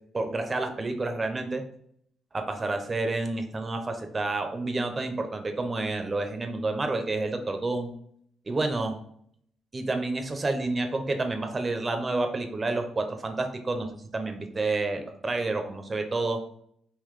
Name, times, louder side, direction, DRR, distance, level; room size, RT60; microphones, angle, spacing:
voice 1, 0.1-1.6 2.3-7.9 8.5-9.0 9.7-16.4, right 2 dB, 30° right, 5 dB, 0.8 m, -29 dB
3.9 x 2.9 x 4.7 m, 0.68 s
cardioid pair, 90°, 0 cm